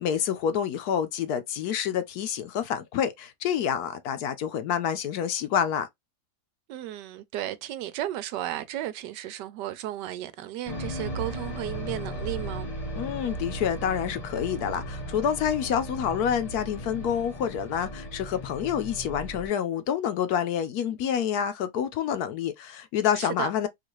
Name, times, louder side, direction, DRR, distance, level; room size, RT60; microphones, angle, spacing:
voice 1, 0.0-5.9 12.9-23.7, left 8 dB, 70° left, 1.1 m, -28 dB
voice 2, 6.7-12.7 23.1-23.5, right 13 dB, 85° right, 1.2 m, -34 dB
sound 1, 10.7-19.5, right 1 dB, 30° left, 0.8 m, -36 dB
3.8 x 2.5 x 3.0 m
omnidirectional pair, 1.8 m